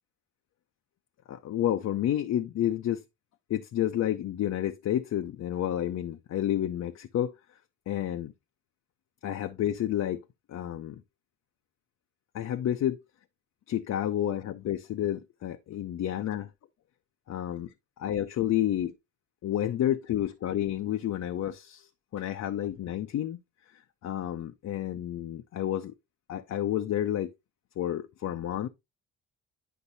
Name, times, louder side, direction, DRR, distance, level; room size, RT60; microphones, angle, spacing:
voice 1, 1.3-3.0 3.5-7.3 7.9-8.3 9.2-10.2 10.5-11.0 12.3-13.0 13.7-16.5 17.3-17.7 18.0-18.9 19.4-23.4 23.7-25.9 26.3-27.3 27.8-28.7, left 11 dB, 60° left, 0.7 m, -30 dB
10.0 x 5.2 x 2.7 m
cardioid pair, 90°, 30 cm